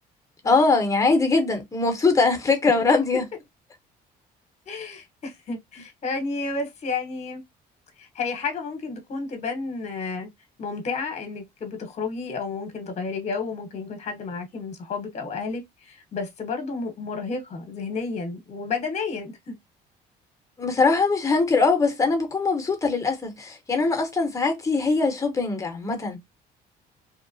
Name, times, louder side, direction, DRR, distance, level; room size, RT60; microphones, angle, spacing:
voice 1, 0.4-3.2 20.6-26.2, left 3 dB, 20° left, 0.9 m, -22 dB
voice 2, 4.7-7.4 8.0-10.3 10.6-19.5, left 4 dB, 40° left, 1.0 m, -31 dB
2.8 x 2.0 x 2.6 m
cardioid pair, 110°, 17 cm